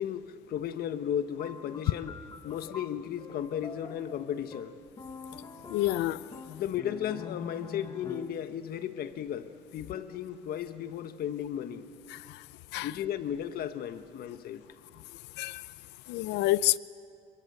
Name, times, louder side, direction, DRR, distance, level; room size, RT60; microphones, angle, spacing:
voice 1, 0.0-4.7 6.5-11.9 12.8-14.6, left 10 dB, 65° left, 1.3 m, -35 dB
sound 1, 1.4-8.5, left 4 dB, 25° left, 1.5 m, -45 dB
voice 2, 5.7-6.2 12.1-12.4 12.7-12.9 15.4-15.6 16.1-16.8, left 16 dB, 90° left, 0.6 m, -28 dB
28.5 x 22.5 x 8.0 m
cardioid pair, 110°, 17 cm